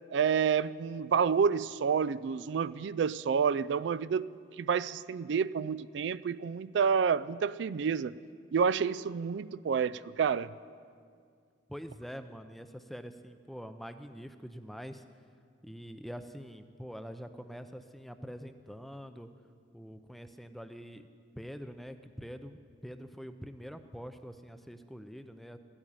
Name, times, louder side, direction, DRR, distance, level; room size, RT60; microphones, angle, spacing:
voice 1, 0.1-4.3 4.6-8.1 8.5-10.5, right 6 dB, 70° right, 17 dB, 0.3 m, -29 dB
voice 2, 11.7-15.0 15.6-19.3 19.7-21.1 21.4-25.6, equal, ahead, 9 dB, 0.5 m, -45 dB
15.0 x 8.8 x 10.0 m, 2.2 s
head